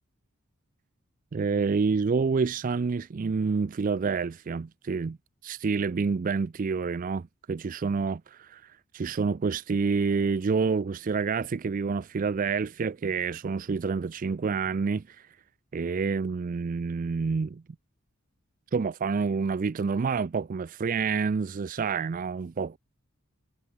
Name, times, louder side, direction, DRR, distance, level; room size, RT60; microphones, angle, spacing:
voice 1, 1.3-5.2 5.4-15.3 15.7-17.6 18.7-22.8, right 5 dB, 40° right, 0.4 m, -28 dB
head